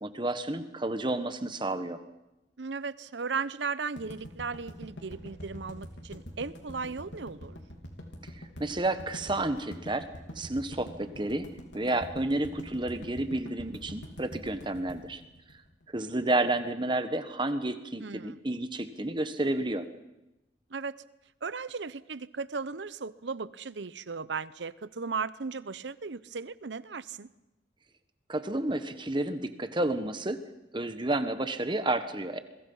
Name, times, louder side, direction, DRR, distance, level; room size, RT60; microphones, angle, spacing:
voice 1, 0.0-2.0 8.3-10.1 10.3-11.5 11.7-15.2 15.9-19.9 28.3-30.4 30.7-32.4, right 2 dB, 25° right, 10 dB, 1.4 m, -31 dB
voice 2, 2.6-7.6 18.0-18.4 20.7-21.0 21.4-27.3, right 5 dB, 75° right, 17 dB, 0.8 m, -36 dB
sound 1, 4.0-16.1, equal, 90° left, 3.7 m, -44 dB
28.0 x 22.5 x 5.6 m, 0.97 s
head